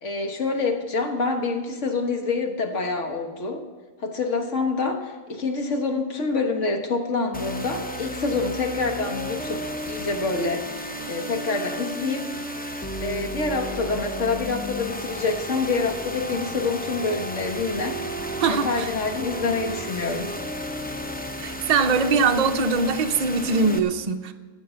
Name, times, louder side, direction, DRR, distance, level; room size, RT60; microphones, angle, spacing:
voice 1, 0.0-3.7 4.0-10.7 11.0-12.3 13.0-18.1 18.5-20.3, left 3 dB, 65° left, 4 dB, 1.6 m, -26 dB
sound 1, 7.3-23.8, equal, 10° left, 0.5 m, -33 dB
voice 2, 18.4-18.9 21.4-24.3, right 4 dB, 45° right, 6 dB, 0.6 m, -22 dB
13.0 x 7.9 x 6.8 m, 1.4 s
omnidirectional pair, 1.4 m